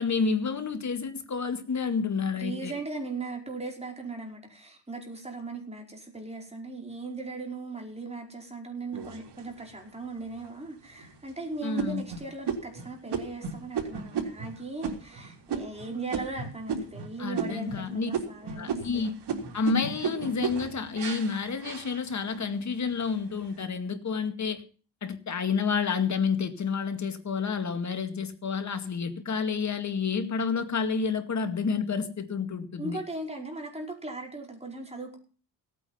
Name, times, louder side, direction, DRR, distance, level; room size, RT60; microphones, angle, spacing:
voice 1, 0.0-2.7 11.6-12.0 17.2-18.1 18.6-19.1 19.5-24.6 25.0-33.0, left 5 dB, 40° left, 2.2 m, -29 dB
voice 2, 2.4-19.1 32.8-35.2, right 3 dB, 15° right, 5.0 m, -38 dB
sound 1, 8.9-9.8 10.4-10.5 11.0-11.3 11.8-17.1 17.3-17.8 18.1-22.4 22.9-23.5, right 6 dB, 70° right, 3.7 m, -34 dB
17.0 x 9.4 x 5.7 m
cardioid pair, 105°, 42 cm